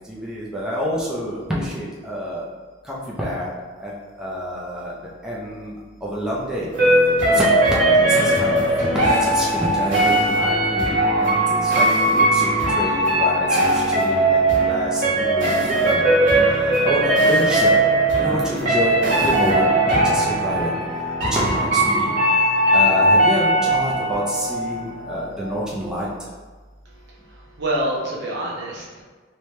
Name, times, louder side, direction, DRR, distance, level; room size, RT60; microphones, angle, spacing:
voice 1, 0.1-2.4 2.8-3.5 3.8-3.9 4.2-4.9 5.2-5.7 6.0-6.7 7.3-16.0 16.6-17.8 18.2-20.7 21.3-26.1, equal, 5° right, -6 dB, 0.5 m, -27 dB
sound 1, 6.7-25.4 25.7-25.8, right 1 dB, 80° right, 1.5 m, -19 dB
voice 2, 26.8-29.0, right 1 dB, 60° right, -4 dB, 0.8 m, -27 dB
3.2 x 2.8 x 3.2 m, 1.4 s
head